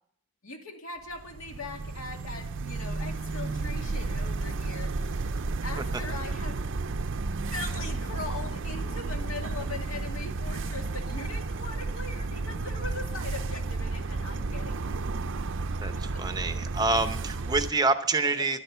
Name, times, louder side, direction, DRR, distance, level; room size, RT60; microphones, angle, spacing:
voice 1, 0.4-5.2 5.6-6.6 7.5-14.9 15.6-16.2 18.2-18.5, left 3 dB, 65° left, 3 dB, 2.2 m, -40 dB
sound 1, 1.1-17.7, right 3 dB, 55° right, 0.5 m, -32 dB
voice 2, 15.8-18.6, right 3 dB, 20° right, 9 dB, 0.7 m, -27 dB
12.5 x 11.5 x 6.7 m, 0.64 s
head